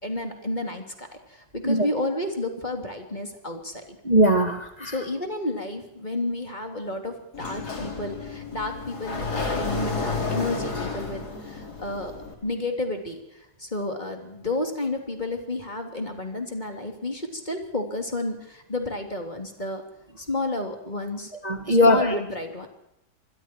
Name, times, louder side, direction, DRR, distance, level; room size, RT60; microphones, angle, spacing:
voice 1, 0.0-4.0 4.8-12.1 12.4-19.8 20.2-21.3 21.7-22.7, left 2 dB, 25° left, 4 dB, 3.4 m, -31 dB
voice 2, 4.0-5.0 21.4-22.2, equal, 25° right, 4 dB, 1.8 m, -20 dB
Sliding door, 7.3-12.3, left 4 dB, 65° left, 4.1 m, -31 dB
26.5 x 22.0 x 4.6 m, 0.83 s
omnidirectional pair, 1.8 m